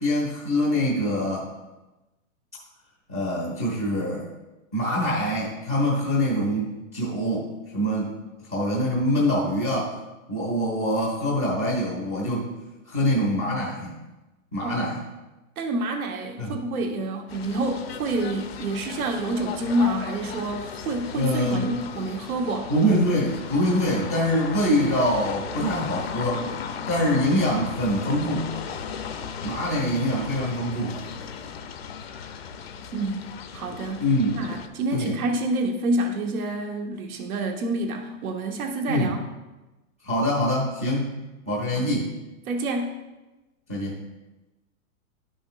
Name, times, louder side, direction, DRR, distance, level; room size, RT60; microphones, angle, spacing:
voice 1, 0.0-1.5 3.1-4.2 4.7-8.1 8.5-9.9 10.3-12.5 12.9-14.0 14.5-15.0 16.4-16.6 21.1-21.7 22.7-26.4 26.9-28.5 29.4-31.0 34.0-34.4 34.9-35.1 38.9-39.1 40.0-41.2 41.5-42.1 43.7-43.9, equal, 15° right, -7 dB, 0.4 m, -24 dB
voice 2, 15.6-23.0 32.9-34.1 34.4-39.2 41.7-41.9 42.5-43.0, right 2 dB, 85° right, 3 dB, 1.2 m, -28 dB
sound 1, 17.3-34.7, left 7 dB, 50° left, 0.5 m, -36 dB
11.0 x 6.2 x 2.4 m, 1.1 s
hypercardioid pair, 175°, 42 cm